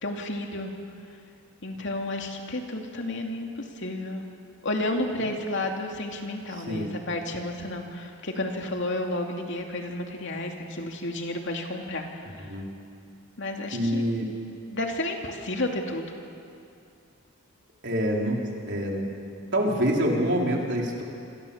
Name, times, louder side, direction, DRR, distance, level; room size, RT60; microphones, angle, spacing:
voice 1, 0.0-0.7 1.6-4.2 4.6-12.5 13.4-14.0 14.7-16.1, left 1 dB, 55° left, 2 dB, 2.7 m, -31 dB
voice 2, 6.5-6.9 12.4-12.7 13.7-14.2 17.8-18.4 18.7-19.0 19.5-21.0, equal, 50° right, -1 dB, 4.5 m, -26 dB
28.0 x 26.5 x 7.3 m, 2.5 s
head